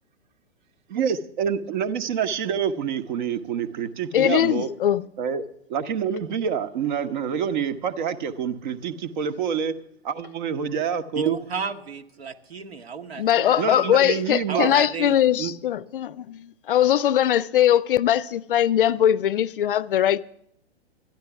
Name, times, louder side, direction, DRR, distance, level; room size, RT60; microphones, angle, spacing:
voice 1, 0.9-4.7 5.2-5.4 5.7-9.7 10.0-11.3 13.6-14.7 15.4-15.5, right 7 dB, 45° right, 0.9 m, -27 dB
voice 2, 4.1-5.0 13.2-20.2, left 11 dB, 55° left, 0.5 m, -21 dB
voice 3, 11.1-13.9 14.5-15.2, right 7 dB, 70° right, 1.2 m, -32 dB
13.0 x 10.5 x 5.8 m
figure-of-eight pair, 115°, 32 cm